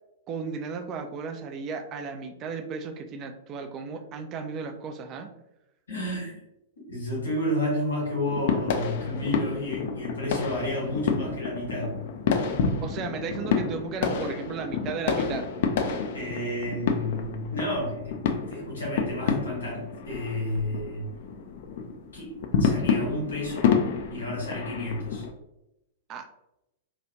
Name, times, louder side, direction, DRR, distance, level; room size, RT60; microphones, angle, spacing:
voice 1, 0.3-5.4 12.8-15.5 26.1-26.3, right 5 dB, 30° right, 6 dB, 0.3 m, -35 dB
voice 2, 5.9-6.4 6.9-12.0 16.1-21.0 22.1-22.3 22.6-23.7 24.1-25.2, left 1 dB, 70° left, -4 dB, 1.4 m, -31 dB
sound 1, 8.3-25.3, left 6 dB, 50° left, 0.3 m, -29 dB
2.8 x 2.3 x 2.8 m, 0.89 s
figure-of-eight pair, 100°, 0 cm